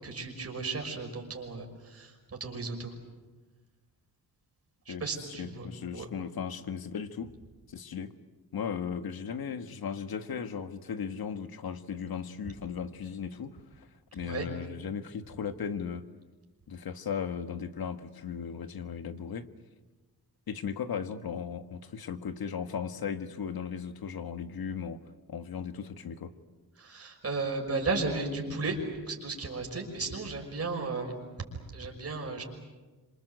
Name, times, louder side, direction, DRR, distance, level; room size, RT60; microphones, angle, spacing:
voice 1, 0.0-2.9 4.9-5.7 5.9-6.1 14.2-14.5 26.8-31.1 31.7-32.4, right 3 dB, 35° right, 1 dB, 5.8 m, -34 dB
voice 2, 5.4-7.3 7.7-8.1 8.5-16.0 16.7-19.5 20.5-25.0 25.3-26.3, left 7 dB, 65° left, 9 dB, 1.6 m, -37 dB
27.0 x 26.0 x 8.0 m, 1.2 s
wide cardioid pair, 130°, 40 cm